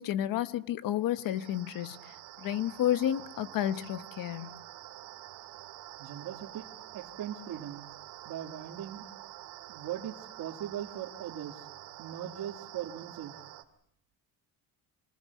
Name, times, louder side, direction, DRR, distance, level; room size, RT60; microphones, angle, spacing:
voice 1, 0.0-4.6, left 11 dB, 55° left, 1.2 m, -31 dB
sound 1, 1.1-13.6, right 14 dB, 90° right, 2.5 m, -48 dB
voice 2, 6.0-6.7 6.9-7.9 8.2-9.0 9.7-11.7 12.0-13.3, right 11 dB, 60° right, 2.3 m, -39 dB
26.0 x 20.0 x 8.4 m
cardioid pair, 165°, 40 cm